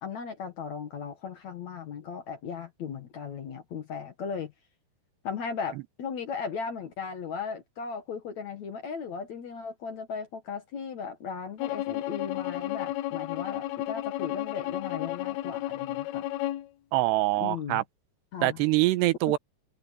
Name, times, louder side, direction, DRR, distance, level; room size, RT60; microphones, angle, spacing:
voice 1, 0.0-4.5 5.2-16.3 17.4-17.8 18.3-18.6 19.3-19.4, left 6 dB, 55° left, 2.2 m, -37 dB
Bowed string instrument, 11.6-16.7, left 14 dB, 80° left, 2.5 m, -32 dB
voice 2, 16.9-17.8 18.4-19.4, right 18 dB, 85° right, 3.0 m, -24 dB
omnidirectional pair, 4.8 m